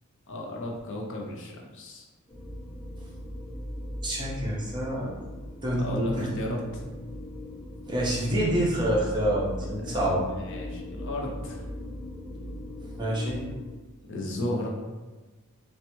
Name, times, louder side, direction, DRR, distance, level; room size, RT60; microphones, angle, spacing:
voice 1, 0.3-2.0 5.8-6.9 10.1-11.6 14.1-14.7, left 1 dB, 60° left, -1 dB, 0.5 m, -34 dB
sound 1, 2.3-13.7, left 1 dB, 20° left, 0.8 m, -38 dB
voice 2, 4.0-5.1 5.6-6.3 7.9-10.2 13.0-13.4, right 1 dB, 20° right, -5 dB, 0.6 m, -27 dB
3.2 x 2.1 x 2.9 m, 1.2 s
head